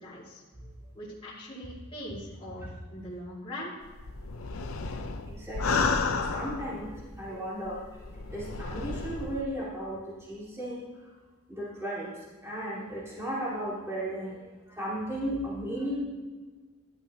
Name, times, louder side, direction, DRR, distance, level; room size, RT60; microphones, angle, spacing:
voice 1, 0.0-0.4 0.9-3.7, equal, 25° left, -8 dB, 2.4 m, -41 dB
sound 1, 3.8-7.0 7.7-9.4, left 4 dB, 75° left, 0.7 m, -32 dB
voice 2, 4.6-11.1 11.5-16.0, right 1 dB, 15° right, -8 dB, 2.6 m, -36 dB
12.5 x 11.5 x 3.0 m, 1.4 s
head